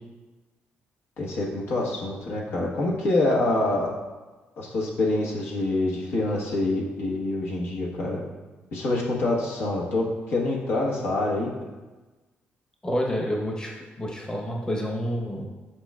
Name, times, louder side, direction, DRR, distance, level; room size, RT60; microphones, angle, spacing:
voice 1, 1.2-3.9 4.6-8.2 8.7-11.5, left 2 dB, 75° left, -2 dB, 1.2 m, -26 dB
voice 2, 12.8-15.4, equal, 20° left, 0 dB, 0.9 m, -29 dB
8.8 x 4.5 x 2.4 m, 1.2 s
cardioid pair, 90°, 4 cm